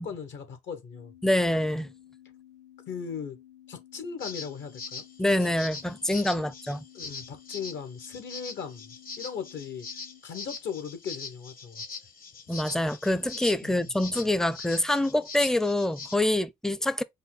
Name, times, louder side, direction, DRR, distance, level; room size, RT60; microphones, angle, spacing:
voice 1, 0.0-1.1 2.9-3.4 3.7-5.0 6.4-6.5 6.9-9.9 10.2-11.8 13.6-13.9, left 6 dB, 70° left, 1.2 m, -38 dB
sound 1, 0.9-10.2, left 12 dB, 85° left, 1.4 m, -54 dB
voice 2, 1.2-1.9 5.2-6.8 12.5-17.0, left 1 dB, 5° left, 0.4 m, -26 dB
sound 2, 4.2-16.2, left 4 dB, 45° left, 0.9 m, -42 dB
5.3 x 2.3 x 3.8 m
cardioid pair, 90°, 20 cm